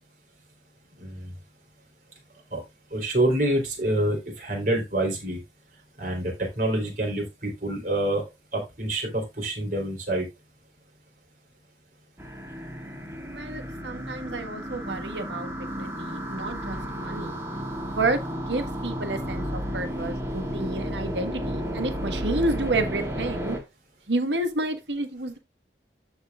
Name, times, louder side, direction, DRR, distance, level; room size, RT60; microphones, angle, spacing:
voice 1, 1.0-1.3 2.5-2.6 2.9-5.4 6.0-8.2 8.5-10.3, right 1 dB, 45° right, 3.7 m, -27 dB
sound 1, 12.2-23.6, equal, 15° right, 1.6 m, -33 dB
voice 2, 13.3-17.4 17.9-18.2 18.5-23.6 24.1-25.4, right 2 dB, 85° right, 1.5 m, -30 dB
14.5 x 4.9 x 2.4 m
head